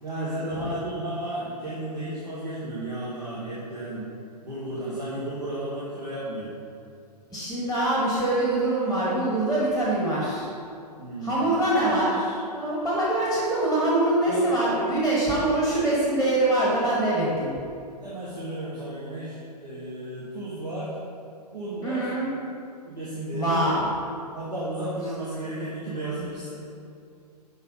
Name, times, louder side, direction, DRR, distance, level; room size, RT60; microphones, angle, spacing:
voice 1, 0.0-4.1 4.4-6.6 11.0-11.5 14.3-14.4 18.0-21.0 21.5-22.4 22.8-23.7 24.3-26.5, right 1 dB, 80° right, -9 dB, 1.4 m, -33 dB
voice 2, 7.3-10.5 11.2-17.5 21.8-22.3 23.3-23.9, right 1 dB, 5° right, -6 dB, 1.1 m, -24 dB
5.8 x 5.5 x 3.8 m, 2.5 s
figure-of-eight pair, 115°, 21 cm